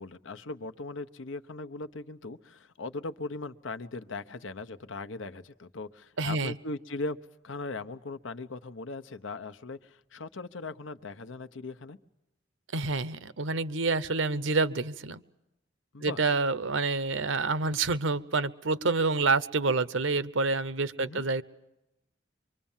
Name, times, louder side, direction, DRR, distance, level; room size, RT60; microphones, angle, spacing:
voice 1, 0.0-7.2 7.4-12.0 15.9-16.2 21.0-21.2, left 3 dB, 85° left, 10 dB, 1.0 m, -39 dB
voice 2, 6.2-6.6 12.7-15.2 16.0-21.4, right 3 dB, 85° right, 16 dB, 0.9 m, -28 dB
25.0 x 24.5 x 7.3 m, 0.94 s
head